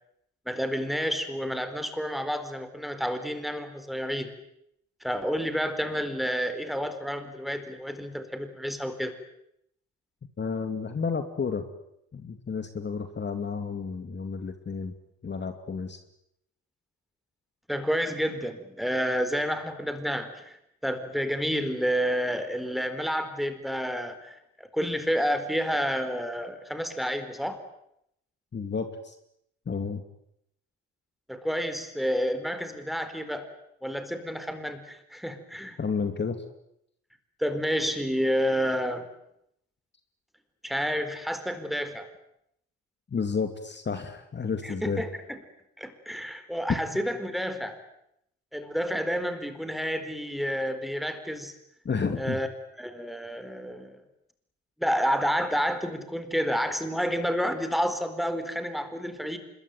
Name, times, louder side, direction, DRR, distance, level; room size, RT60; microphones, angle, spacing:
voice 1, 0.5-4.3 5.0-9.1 17.7-20.6 20.8-27.6 31.3-33.5 33.8-35.8 37.4-39.1 40.6-42.1 44.6-45.4 45.8-47.8 48.5-51.5 52.2-52.5 52.8-54.0 54.8-59.4, equal, ahead, 9 dB, 4.3 m, -30 dB
voice 2, 10.4-11.6 12.1-14.9 15.2-16.0 28.5-29.2 29.7-30.0 35.8-36.4 43.1-45.0 51.8-52.4, left 5 dB, 35° left, 7 dB, 2.4 m, -31 dB
25.5 x 22.0 x 9.4 m, 0.77 s
cardioid pair, 90°, 30 cm